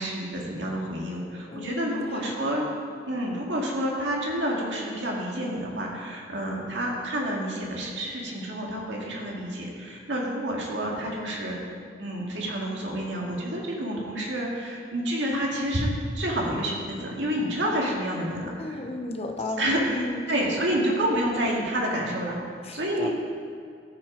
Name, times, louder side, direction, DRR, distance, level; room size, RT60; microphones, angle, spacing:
voice 1, 0.0-2.7 3.1-11.6 12.0-18.8 19.6-23.1, equal, 75° right, -2 dB, 2.1 m, -29 dB
voice 2, 1.5-2.3 18.6-20.2 22.6-23.2, left 2 dB, 35° left, 4 dB, 0.9 m, -34 dB
14.5 x 6.0 x 5.1 m, 2.2 s
head